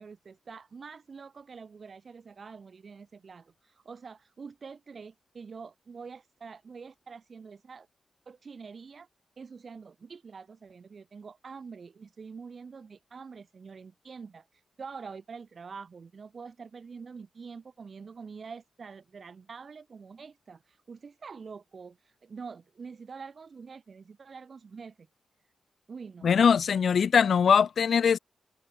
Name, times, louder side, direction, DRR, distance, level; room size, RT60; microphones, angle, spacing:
voice 1, 0.0-7.9 8.3-9.1 9.4-25.1 25.4-25.5 25.9-26.3, right 5 dB, 45° right, 0.9 m, -46 dB
voice 2, 26.2-28.2, left 7 dB, 65° left, 0.3 m, -21 dB
wide cardioid pair, 150°, 0 cm